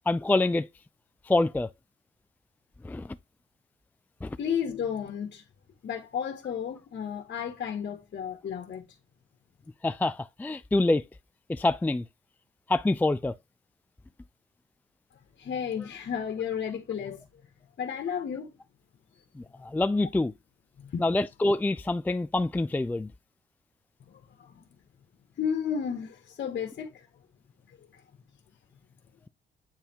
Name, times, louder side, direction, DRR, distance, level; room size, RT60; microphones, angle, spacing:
voice 1, 0.1-0.7 1.3-1.7 2.8-3.1 4.2-4.4 9.8-11.0 11.5-12.0 12.7-13.3 19.4-20.3 21.0-23.1, left 2 dB, 10° left, 0.4 m, -26 dB
voice 2, 4.4-5.4 5.8-8.9 15.4-17.2 17.8-18.5 20.8-21.1 24.1-24.7 25.4-27.1, left 7 dB, 55° left, 1.6 m, -33 dB
8.9 x 3.4 x 4.5 m
cardioid pair, 90°, 20 cm